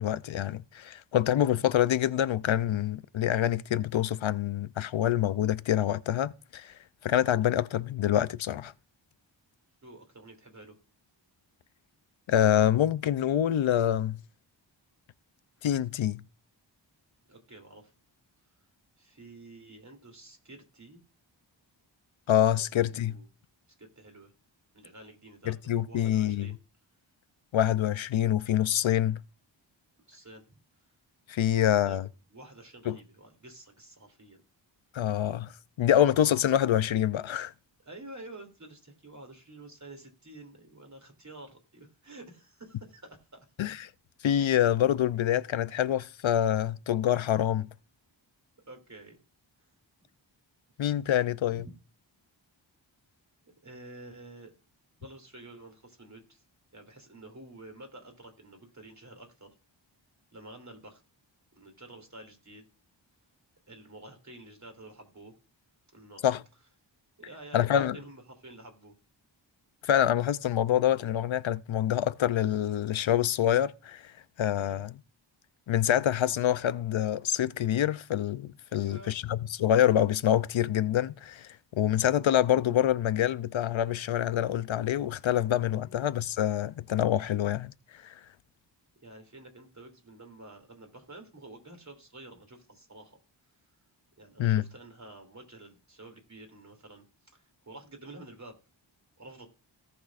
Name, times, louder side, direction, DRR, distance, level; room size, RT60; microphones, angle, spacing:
voice 1, 0.0-6.7 7.0-8.7 12.3-14.2 15.6-16.2 22.3-23.2 25.5-26.5 27.5-29.2 31.3-32.1 32.9-33.0 34.9-35.5 35.8-37.5 43.6-43.9 44.2-47.7 50.8-51.6 66.2-66.4 67.5-68.0 69.8-74.1 74.4-74.9 75.7-88.2 94.4-94.6, left 11 dB, 80° left, 0.6 m, -26 dB
voice 2, 9.8-10.8 17.3-17.9 19.0-21.0 22.6-23.3 23.8-24.3 24.7-26.6 30.1-30.6 31.4-32.0 32.3-34.4 37.9-43.7 48.6-49.2 51.5-51.7 53.4-54.5 55.0-56.4 56.7-59.5 60.3-61.0 61.6-62.6 63.7-65.3 65.9-66.2 67.2-69.0 74.6-74.8 76.3-76.4 78.7-79.2 85.8-86.0 89.0-93.2 94.2-98.6 99.2-99.5, right 2 dB, 35° right, 2.8 m, -49 dB
17.0 x 6.1 x 2.4 m
wide cardioid pair, 105°, 46 cm